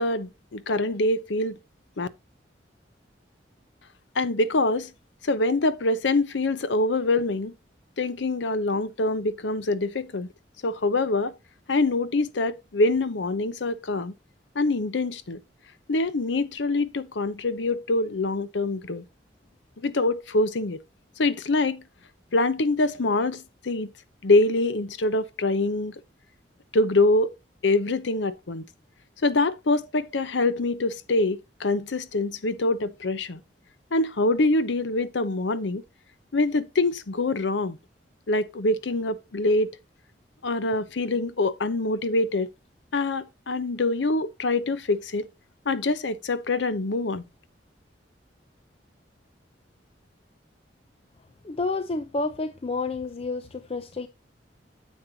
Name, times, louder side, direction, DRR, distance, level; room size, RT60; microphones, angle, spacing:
voice 1, 0.0-1.6 2.0-2.1 4.2-4.9 5.2-7.5 8.0-10.3 10.6-11.3 11.7-14.1 14.5-15.4 15.9-19.0 19.8-20.8 21.2-21.8 22.3-23.9 24.2-25.9 26.7-27.3 27.6-28.6 29.2-33.4 33.9-35.8 36.3-37.8 38.3-39.7 40.4-42.5 42.9-45.3 45.7-47.2, left 2 dB, 80° left, 0.7 m, -25 dB
voice 2, 51.4-54.1, left 3 dB, 35° left, 0.5 m, -30 dB
9.8 x 7.3 x 2.7 m
head